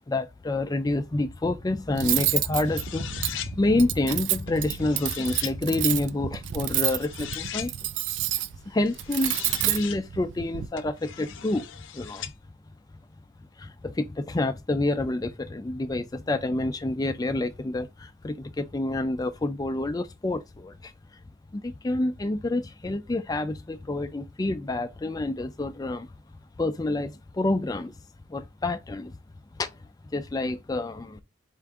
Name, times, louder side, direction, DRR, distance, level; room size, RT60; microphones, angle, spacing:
voice 1, 0.0-7.7 8.3-11.7 11.9-12.3 13.6-20.9 21.5-26.1 26.6-27.9 28.3-29.2 29.5-29.7 30.1-31.2, left 2 dB, 20° left, 0.4 m, -28 dB
Cutlery silverware, 1.9-10.7, right 13 dB, 75° right, 0.3 m, -29 dB
sound 1, 2.5-3.5 4.5-5.5 6.7-7.7 8.9-10.0 10.8-12.3, left 10 dB, 85° left, 0.5 m, -39 dB
4.5 x 2.5 x 3.5 m
head